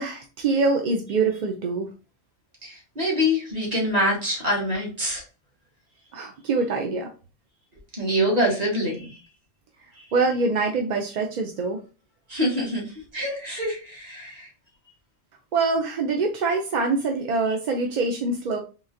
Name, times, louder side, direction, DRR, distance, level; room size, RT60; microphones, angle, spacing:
voice 1, 0.0-1.9 6.1-7.1 10.1-11.8 15.5-18.6, right 3 dB, 55° right, 2 dB, 0.5 m, -24 dB
voice 2, 2.6-5.2 8.0-9.2 12.3-14.5, equal, 35° right, -3 dB, 1.7 m, -25 dB
3.8 x 3.2 x 2.6 m, 0.33 s
omnidirectional pair, 1.1 m